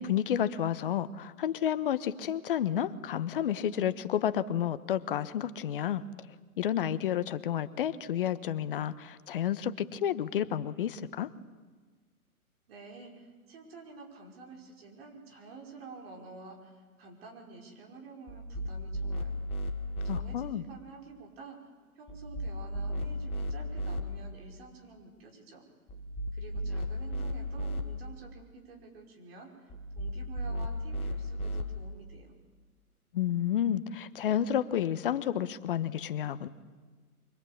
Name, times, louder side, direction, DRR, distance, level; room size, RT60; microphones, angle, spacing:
voice 1, 0.0-6.0 6.6-11.3 20.1-20.6 33.1-36.5, left 10 dB, 35° left, 14 dB, 1.0 m, -30 dB
voice 2, 12.7-19.3 20.0-21.6 22.0-25.6 26.3-29.7 30.0-32.3, right 3 dB, 40° right, 0 dB, 5.5 m, -49 dB
sound 1, 18.3-20.2 22.1-24.0 25.9-27.8 29.7-31.6, equal, 10° left, 1.4 m, -35 dB
25.0 x 24.5 x 8.6 m, 1.4 s
figure-of-eight pair, 135°, 45 cm